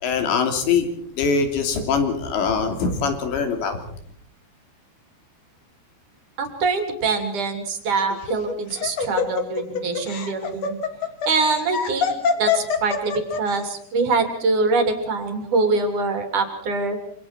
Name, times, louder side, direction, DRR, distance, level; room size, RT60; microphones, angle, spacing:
voice 1, 0.0-0.9 1.2-3.8, left 5 dB, 85° left, 5 dB, 5.3 m, -22 dB
voice 2, 6.4-10.8 11.3-12.1 12.4-17.0, right 3 dB, 50° right, 5 dB, 4.3 m, -24 dB
Laughter, 8.1-13.6, left 6 dB, 45° left, 2.7 m, -25 dB
27.5 x 26.5 x 4.5 m, 0.63 s
omnidirectional pair, 5.0 m